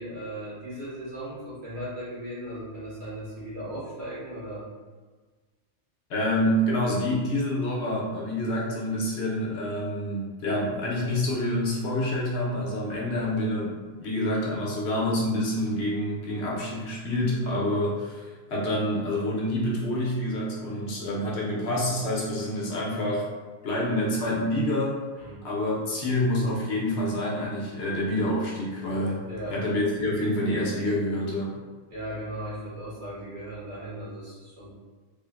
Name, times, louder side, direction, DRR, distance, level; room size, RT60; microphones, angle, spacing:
voice 1, 0.0-4.7 12.9-13.3 25.2-25.4 29.3-29.6 31.9-34.7, right 1 dB, 70° right, -8 dB, 1.3 m, -37 dB
voice 2, 6.1-13.7 14.0-23.2 23.6-25.0 25.4-29.2 29.5-31.5, left 1 dB, 75° left, -4 dB, 1.0 m, -27 dB
3.4 x 2.1 x 2.2 m, 1.4 s
omnidirectional pair, 1.2 m